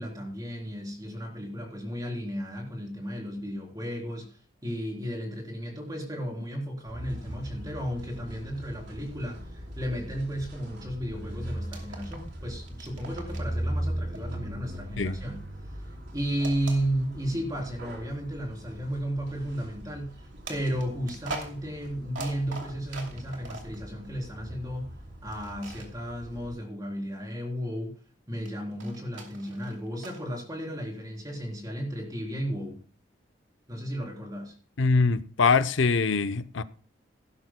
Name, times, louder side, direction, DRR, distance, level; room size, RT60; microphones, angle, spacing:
voice 1, 0.0-24.9 25.2-28.0 28.3-32.8 33.7-34.5, equal, 20° right, 3.7 m, -34 dB
sound 1, 6.8-26.5, right 1 dB, 70° right, 4.0 m, -40 dB
sound 2, 11.6-12.4 12.6-13.6 14.1-15.6 16.4-17.5 18.1-18.2 20.4-23.8 25.3-25.9 28.5-30.2, right 2 dB, 85° right, 2.7 m, -42 dB
voice 2, 34.8-36.6, left 4 dB, 90° left, 0.7 m, -23 dB
17.0 x 12.5 x 2.2 m
head